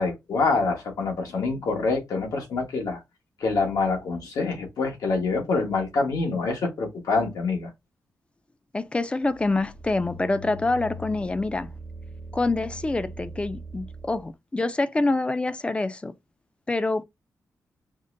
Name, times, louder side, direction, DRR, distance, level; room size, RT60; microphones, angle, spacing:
voice 1, 0.0-3.0 3.4-7.7, left 3 dB, 85° left, 1.3 m, -26 dB
voice 2, 8.7-11.7 12.3-16.1 16.7-17.0, left 2 dB, 20° left, 0.3 m, -26 dB
sound 1, 9.2-14.3, equal, 40° left, 0.8 m, -41 dB
5.1 x 2.1 x 2.5 m
wide cardioid pair, 115°, 6 cm